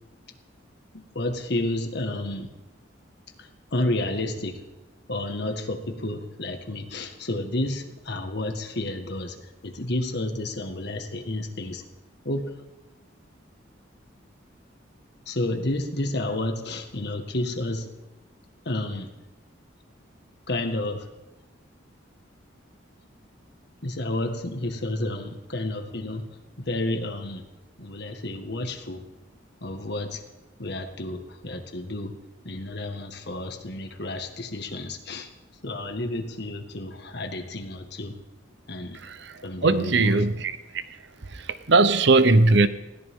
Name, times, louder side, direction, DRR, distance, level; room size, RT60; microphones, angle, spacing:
voice 1, 0.9-2.5 3.4-4.6 5.1-9.4 9.6-11.8 12.3-12.5 15.3-17.9 18.7-19.1 20.5-21.1 23.8-27.4 27.8-29.0 29.6-30.2 30.6-32.2 32.4-35.3 35.6-38.2 38.7-39.0 39.4-40.3, left 1 dB, 55° left, 5 dB, 1.8 m, -31 dB
voice 2, 39.6-40.5 41.7-42.7, right 3 dB, 60° right, 12 dB, 0.8 m, -18 dB
20.5 x 17.0 x 3.8 m, 1.0 s
head